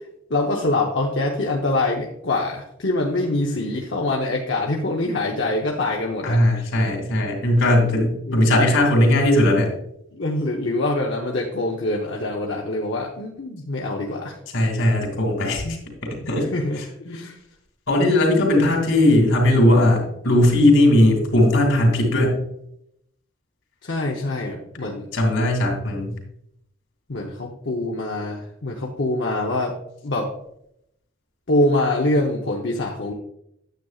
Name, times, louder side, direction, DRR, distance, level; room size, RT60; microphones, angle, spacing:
voice 1, 0.3-6.4 8.3-8.4 10.1-14.3 15.6-15.8 16.5-17.4 23.8-25.1 27.1-29.8 30.0-30.3 31.5-33.1, left 2 dB, 55° left, -1 dB, 0.9 m, -24 dB
voice 2, 6.2-9.7 14.5-16.5 16.8-16.9 17.9-22.4 25.1-26.1, left 1 dB, 75° left, 1 dB, 2.7 m, -18 dB
9.2 x 8.5 x 2.4 m, 0.77 s
head